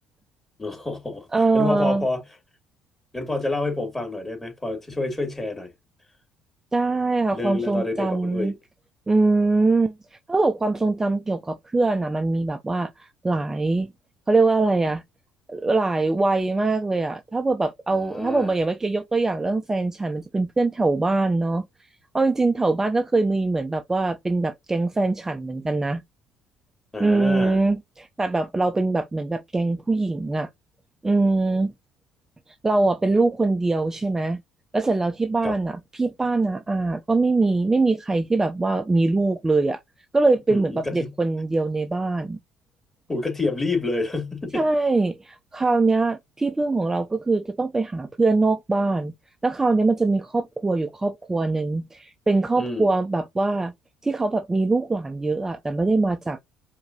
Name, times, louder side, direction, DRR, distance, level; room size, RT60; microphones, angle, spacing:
voice 1, 0.6-1.3 1.5-2.2 3.1-5.7 7.3-8.5 17.9-18.6 26.9-27.6 35.4-35.6 40.5-41.2 43.1-44.6 52.6-52.9, left 2 dB, 15° left, 2.8 m, -28 dB
voice 2, 1.3-2.0 6.7-8.5 9.1-9.9 10.3-13.9 14.3-15.0 15.5-21.7 22.1-26.0 27.0-30.5 31.0-31.7 32.5-34.4 34.7-39.8 40.1-42.4 44.5-49.1 49.4-53.7 54.0-56.4, right 3 dB, 20° right, 0.6 m, -23 dB
4.7 x 3.7 x 2.8 m
hypercardioid pair, 60°, 2 cm